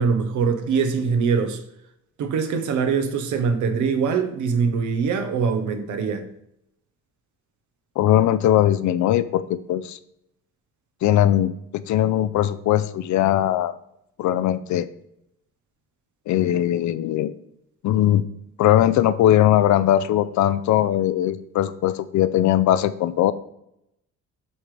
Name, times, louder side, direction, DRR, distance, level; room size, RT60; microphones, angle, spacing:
voice 1, 0.0-1.6 2.2-6.3, right 5 dB, 75° right, 1.0 m, -23 dB
voice 2, 8.0-9.4 9.7-10.0 11.0-13.7 14.2-14.9 16.3-17.3 17.8-18.2 18.6-23.3, left 12 dB, 70° left, 0.5 m, -20 dB
7.2 x 3.3 x 5.0 m
cardioid pair, 90°, 30 cm